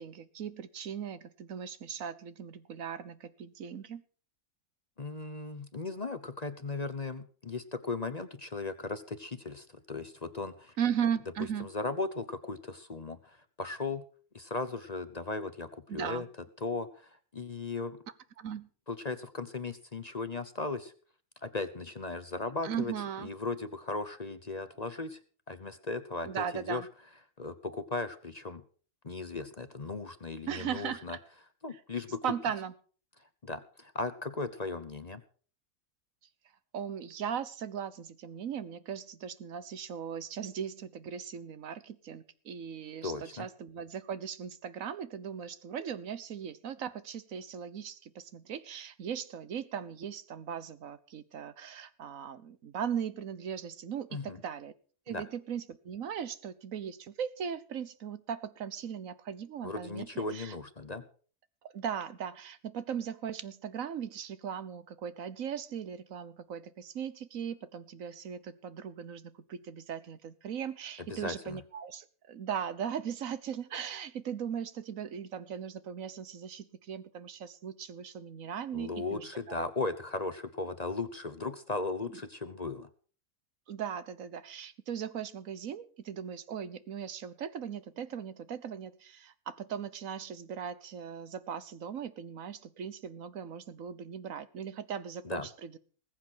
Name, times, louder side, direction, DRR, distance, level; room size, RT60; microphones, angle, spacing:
voice 1, 0.0-4.0 10.8-11.7 15.9-16.2 18.4-18.7 22.6-23.3 26.2-26.9 30.5-31.0 32.2-32.7 36.7-54.7 55.1-60.5 61.7-79.6 83.7-95.8, right 8 dB, 60° right, 14 dB, 1.4 m, -38 dB
voice 2, 5.0-10.8 11.6-14.0 14.3-16.3 16.6-18.0 18.9-20.9 21.4-25.2 25.5-26.9 27.4-28.6 29.0-31.2 31.6-32.2 33.2-35.2 43.0-43.5 54.1-54.4 55.1-55.2 59.6-61.0 71.1-71.6 78.7-82.9 95.2-95.5, left 3 dB, 30° left, 11 dB, 0.9 m, -37 dB
20.0 x 8.1 x 6.3 m, 0.43 s
omnidirectional pair, 1.6 m